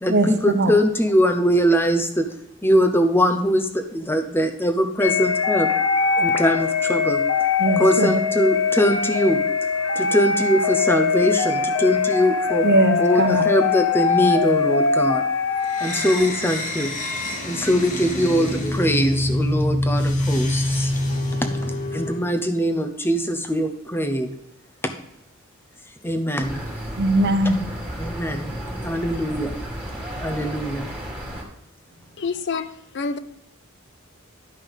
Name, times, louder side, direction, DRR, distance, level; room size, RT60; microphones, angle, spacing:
voice 1, 0.0-2.3 2.6-5.7 6.2-7.2 7.8-9.4 10.0-12.7 13.0-15.2 15.8-16.9 17.4-20.9 21.6-24.3 24.8-24.9 26.0-26.6 28.0-28.5 28.8-29.5 30.2-30.9, equal, 10° left, 0.8 m, -22 dB
sound 1, 5.0-16.2, left 5 dB, 75° left, 1.0 m, -22 dB
voice 2, 7.6-8.2 12.6-13.4 27.0-27.7, right 2 dB, 55° right, 0.9 m, -20 dB
sound 2, 15.7-22.3, left 1 dB, 35° left, 1.3 m, -25 dB
sound 3, 26.4-31.4, right 1 dB, 5° right, 2.0 m, -33 dB
voice 3, 32.2-32.7 32.9-33.2, left 4 dB, 55° left, 0.6 m, -26 dB
11.0 x 5.4 x 5.4 m
head